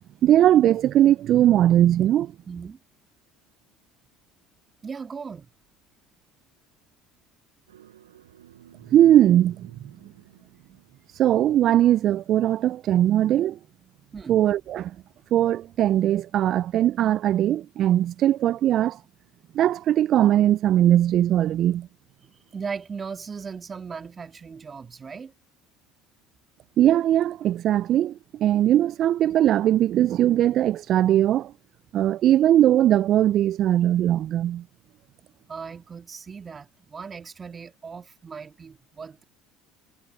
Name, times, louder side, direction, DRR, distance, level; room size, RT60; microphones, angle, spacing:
voice 1, 0.2-2.3 8.9-9.6 11.1-13.6 14.3-14.9 15.3-19.0 19.6-21.9 26.8-28.1 28.4-31.5 31.9-34.6, right 12 dB, 50° right, 0.3 m, -20 dB
voice 2, 2.5-2.8 4.8-5.5 14.1-14.4 22.5-25.3 35.5-39.2, right 5 dB, 30° right, 2.0 m, -37 dB
sound 1, 7.7-12.6, right 11 dB, 90° right, 4.9 m, -55 dB
hypercardioid pair, 70°, 0 cm